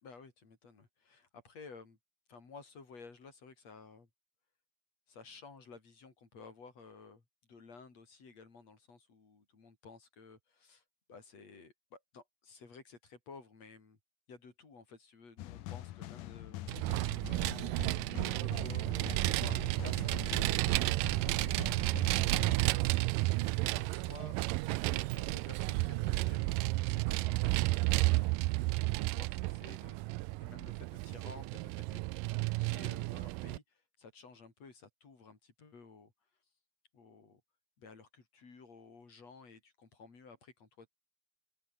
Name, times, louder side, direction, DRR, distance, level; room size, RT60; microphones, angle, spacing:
voice 1, 0.0-2.0 2.3-4.1 5.1-7.2 7.5-10.8 11.1-14.0 14.3-16.8 17.1-17.8 18.1-23.1 23.7-24.4 24.9-28.5 29.0-30.0 30.4-32.0 32.6-36.1 36.9-37.4 37.8-40.9, left 4 dB, 50° left, 5.9 m, -54 dB
sound 1, 15.4-22.6, left 15 dB, 75° left, 2.4 m, -45 dB
Vehicle, 16.7-33.6, right 21 dB, 85° right, 2.2 m, -32 dB
open air
omnidirectional pair, 3.9 m